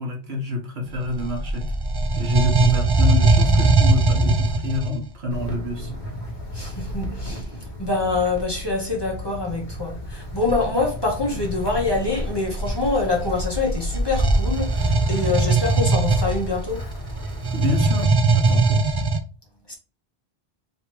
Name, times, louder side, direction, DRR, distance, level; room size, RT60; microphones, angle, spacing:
voice 1, 0.0-1.6 2.2-5.9 17.5-18.8, left 2 dB, 75° right, 1.4 m, -28 dB
sound 1, 0.9-5.0 10.4-10.6 11.4-19.2, right 3 dB, 35° right, 0.4 m, -20 dB
Wind, 5.3-18.0, equal, 50° left, 1.1 m, -35 dB
voice 2, 6.5-16.8 19.7-19.8, left 3 dB, 25° left, 1.1 m, -25 dB
3.3 x 2.9 x 4.5 m
omnidirectional pair, 1.1 m